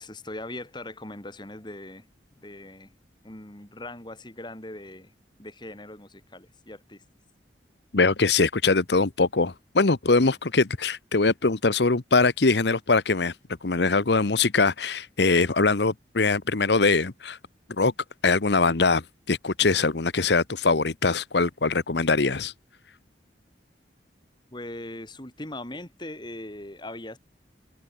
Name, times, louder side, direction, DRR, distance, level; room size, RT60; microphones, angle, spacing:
voice 1, 0.0-2.0 2.4-2.9 3.2-5.1 5.4-7.0 24.5-27.2, left 1 dB, 25° left, 3.1 m, -40 dB
voice 2, 7.9-13.3 13.6-17.4 17.8-17.9 18.2-22.5, left 3 dB, 70° left, 1.1 m, -22 dB
head